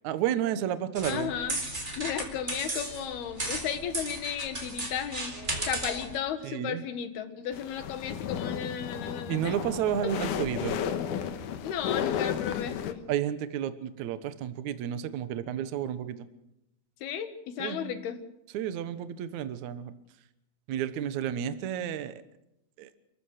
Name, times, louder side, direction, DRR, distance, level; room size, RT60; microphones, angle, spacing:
voice 1, 0.0-1.3 6.4-6.8 9.3-10.8 13.1-16.3 17.6-17.9 18.5-19.9 20.7-22.1 22.8-22.9, right 10 dB, 60° right, 12 dB, 2.2 m, -31 dB
sound 1, 1.0-6.2, right 2 dB, 20° right, 3.9 m, -35 dB
voice 2, 1.1-1.6 2.0-5.4 5.7-9.5 11.6-13.0 17.0-18.2, left 8 dB, 85° left, 9 dB, 3.7 m, -34 dB
sound 2, 7.5-12.9, left 8 dB, 65° left, 2.5 m, -33 dB
29.5 x 15.0 x 6.5 m, 0.86 s
omnidirectional pair, 4.4 m